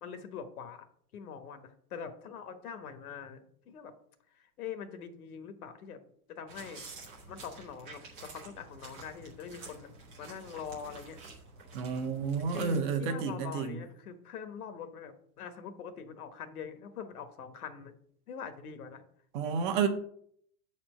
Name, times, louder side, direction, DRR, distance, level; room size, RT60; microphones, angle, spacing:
voice 1, 0.0-0.8 1.1-3.4 3.6-3.9 4.3-6.0 6.3-6.8 7.3-9.9 10.2-11.2 12.4-17.9 18.3-19.0, left 7 dB, 75° left, 1.4 m, -43 dB
sound 1, 6.5-12.8, right 3 dB, 10° right, 0.4 m, -49 dB
voice 2, 11.7-13.8 19.3-19.9, right 6 dB, 35° right, 0.9 m, -30 dB
7.4 x 4.4 x 6.2 m
hypercardioid pair, 155°, 45 cm